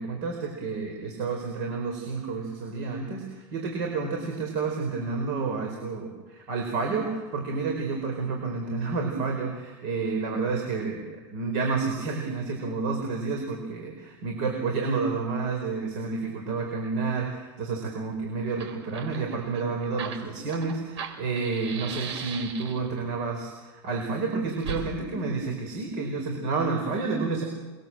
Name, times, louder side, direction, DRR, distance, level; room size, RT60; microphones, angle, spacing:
voice 1, 0.0-27.4, right 4 dB, 45° right, 2 dB, 4.8 m, -30 dB
Fire, 18.1-18.2 18.4-23.0 24.6-24.8, right 6 dB, 90° right, 6.0 m, -38 dB
29.0 x 22.5 x 7.8 m, 1.2 s
supercardioid pair, 175°, 14 cm